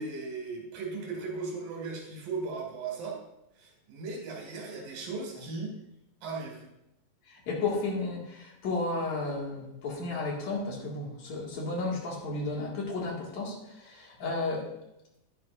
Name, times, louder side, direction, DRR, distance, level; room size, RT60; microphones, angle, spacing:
voice 1, 0.0-3.2 3.6-5.7 6.2-6.7, right 4 dB, 75° right, 0 dB, 3.8 m, -37 dB
voice 2, 7.3-14.6, left 3 dB, 55° left, -3 dB, 3.2 m, -33 dB
11.0 x 11.0 x 2.6 m, 0.87 s
omnidirectional pair, 4.2 m